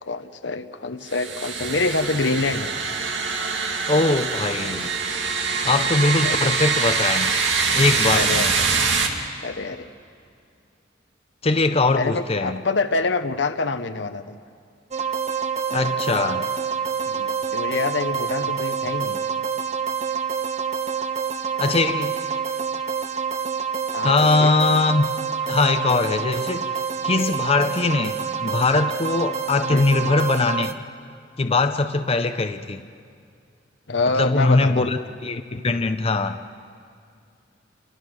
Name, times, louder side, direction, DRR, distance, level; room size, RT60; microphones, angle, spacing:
voice 1, 0.0-2.7 6.2-6.5 8.1-8.7 9.4-9.9 12.0-14.4 17.1-19.2 23.9-24.5 29.7-30.1 33.9-34.9, left 3 dB, 75° left, 10 dB, 1.0 m, -26 dB
sound 1, 1.1-9.1, right 5 dB, 75° right, 2.2 m, -24 dB
voice 2, 3.9-4.9 5.6-7.3 7.7-8.5 11.4-12.6 15.7-16.5 21.6-22.1 24.0-25.1 25.5-26.7 27.0-30.8 31.4-32.8 34.2-36.4, left 3 dB, 35° left, 8 dB, 0.6 m, -21 dB
sound 2, 14.9-30.7, right 6 dB, 40° right, 1.0 m, -27 dB
29.0 x 24.0 x 6.3 m, 2.4 s
head